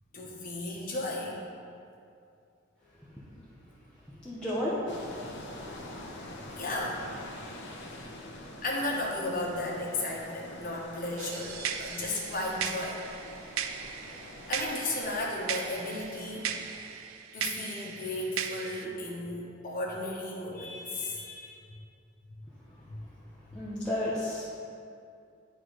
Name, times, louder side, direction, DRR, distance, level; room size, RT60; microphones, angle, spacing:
voice 1, 0.1-1.4 6.6-7.1 7.9-8.1 8.6-13.0 14.5-16.5 17.3-21.8 22.9-23.0, left 2 dB, 45° left, -3 dB, 1.1 m, -34 dB
voice 2, 4.2-4.8 5.6-5.9 6.5-6.6 23.5-24.4, left 1 dB, 5° left, -10 dB, 0.9 m, -32 dB
sound 1, 4.9-17.0, left 1 dB, 60° left, 0.8 m, -46 dB
sound 2, 11.2-18.9, right 8 dB, 80° right, 0.4 m, -37 dB
11.0 x 3.8 x 3.2 m, 2.5 s
head